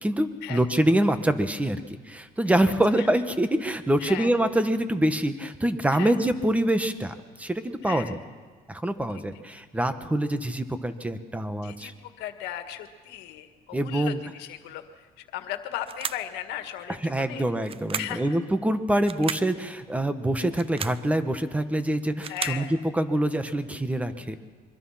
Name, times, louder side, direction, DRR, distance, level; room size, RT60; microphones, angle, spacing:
voice 1, 0.0-1.8 2.1-8.2 8.7-11.9 13.7-14.2 17.0-24.4, right 1 dB, 10° right, 9 dB, 1.5 m, -25 dB
voice 2, 2.7-3.1 4.0-4.3 5.9-6.2 7.8-8.2 9.1-9.2 11.6-17.5 18.0-18.4 22.3-22.7, left 12 dB, 90° left, 8 dB, 1.7 m, -37 dB
sound 1, 15.8-16.3 17.6-18.2 19.0-19.5 20.5-21.0 21.9-22.7, right 7 dB, 35° right, 0.6 m, -34 dB
25.0 x 23.5 x 5.9 m, 1.4 s
cardioid pair, 110°, 17 cm